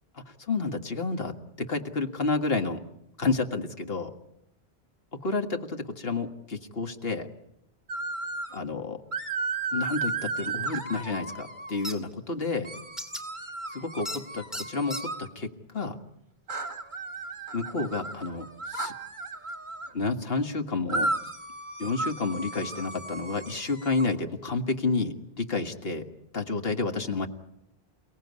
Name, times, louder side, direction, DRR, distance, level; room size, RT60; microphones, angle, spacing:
voice 1, 0.1-2.8 3.2-4.1 5.1-7.3 8.5-9.0 9.7-12.7 13.7-16.0 17.5-18.9 19.9-21.1 21.8-26.1 26.3-27.3, left 3 dB, 70° left, 6 dB, 2.0 m, -30 dB
sound 1, 7.9-8.6 9.1-11.9 12.6-15.3 16.5-19.9 20.9-24.1, right 3 dB, 50° right, 2.0 m, -34 dB
sound 2, 11.8-11.9 13.0-13.2 14.1-14.2 14.5-15.0, equal, ahead, 2.5 m, -34 dB
29.0 x 18.0 x 9.6 m, 0.82 s
omnidirectional pair, 1.1 m